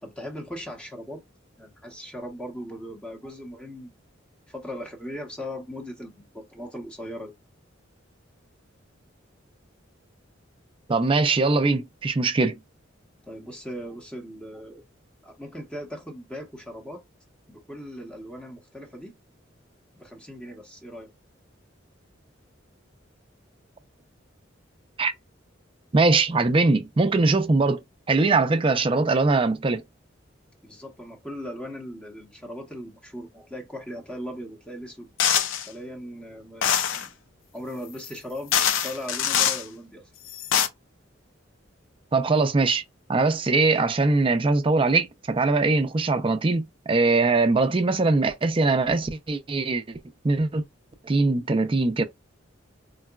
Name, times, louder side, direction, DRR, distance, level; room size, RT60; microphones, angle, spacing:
voice 1, 0.0-1.2 1.6-4.0 4.5-7.3 13.2-14.8 15.2-17.0 17.5-19.2 19.9-21.1 30.6-35.1 35.7-37.1 37.5-40.1, equal, 5° left, 0.9 m, -38 dB
voice 2, 10.9-12.5 25.0-25.1 25.9-27.8 28.1-29.8 42.1-42.8 43.1-50.0 50.2-50.6 51.0-52.0, right 3 dB, 25° right, 0.4 m, -22 dB
sound 1, 35.2-35.7 36.6-37.1 38.0-38.1 38.5-39.6 40.3-40.7, left 9 dB, 85° left, 0.5 m, -23 dB
3.8 x 2.2 x 2.2 m
head